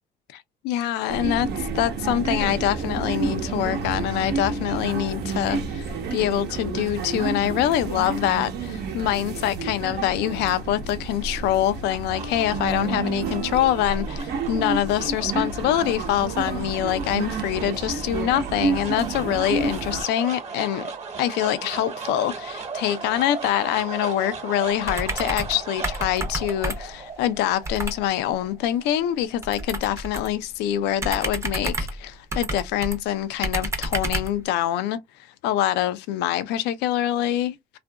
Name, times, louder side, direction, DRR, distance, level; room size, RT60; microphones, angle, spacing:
voice 1, 0.3-20.9 21.2-35.0 35.4-37.6, left 12 dB, 85° left, 0.4 m, -25 dB
sound 1, 1.1-20.0, right 4 dB, 75° right, 0.8 m, -30 dB
sound 2, 11.5-29.9, right 5 dB, 40° right, 1.0 m, -37 dB
sound 3, 24.8-25.6 25.8-27.0 27.6-28.0 29.4-30.4 31.0-33.0 33.4-34.4, right 1 dB, 15° right, 0.6 m, -29 dB
2.7 x 2.5 x 2.2 m
cardioid pair, 110°, 17 cm